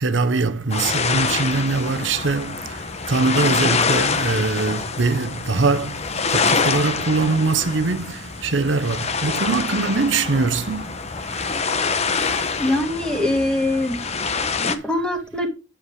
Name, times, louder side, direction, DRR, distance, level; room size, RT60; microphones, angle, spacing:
voice 1, 0.0-12.8 14.1-15.0, right 3 dB, 70° right, 0.8 m, -23 dB
sound 1, 0.7-14.8, left 5 dB, 35° left, 0.9 m, -25 dB
voice 2, 12.6-14.0 14.6-15.5, left 1 dB, 5° left, 2.1 m, -23 dB
8.5 x 7.3 x 4.8 m
head